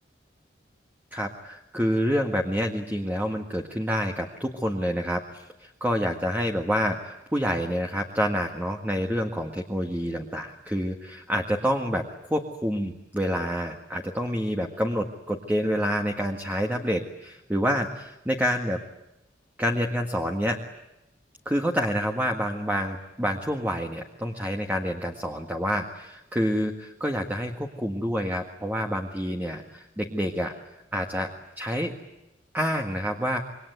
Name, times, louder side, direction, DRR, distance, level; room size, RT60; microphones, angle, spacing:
voice 1, 1.1-12.0 12.3-18.8 19.6-20.6 21.4-30.5 30.9-31.3 31.6-31.9 32.5-33.4, equal, 10° right, 3 dB, 1.7 m, -28 dB
27.5 x 23.0 x 9.4 m, 0.90 s
head